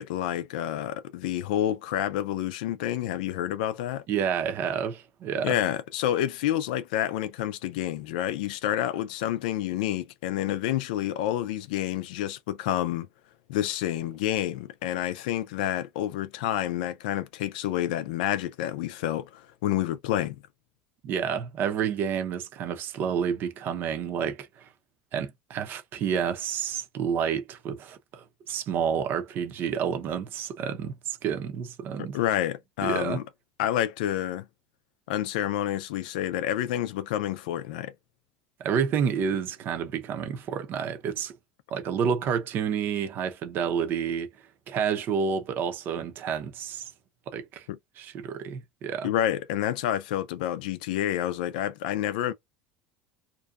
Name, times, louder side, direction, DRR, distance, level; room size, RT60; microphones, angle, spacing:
voice 1, 0.0-4.0 5.4-13.1 13.5-20.4 32.1-33.2 33.6-34.5 35.1-37.9 47.7-47.8 49.0-52.3, left 12 dB, 80° left, 0.4 m, -29 dB
voice 2, 4.1-5.6 21.0-24.7 25.1-32.2 32.8-33.2 38.6-41.3 41.7-44.3 44.7-46.9 47.3-47.7 48.0-49.1, right 7 dB, 50° right, 0.7 m, -29 dB
2.6 x 2.2 x 2.3 m
supercardioid pair, 105°, 5 cm